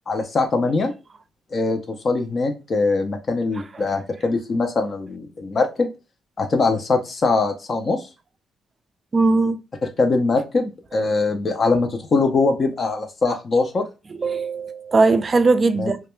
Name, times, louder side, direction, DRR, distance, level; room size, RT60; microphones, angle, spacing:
voice 1, 0.1-0.9 1.5-5.9 6.4-8.1 10.0-13.9 15.7-15.9, left 3 dB, 40° left, 0.4 m, -22 dB
voice 2, 9.1-9.6 14.2-16.0, right 3 dB, 35° right, 0.3 m, -19 dB
2.2 x 2.2 x 3.0 m
cardioid pair, 90°, 0 cm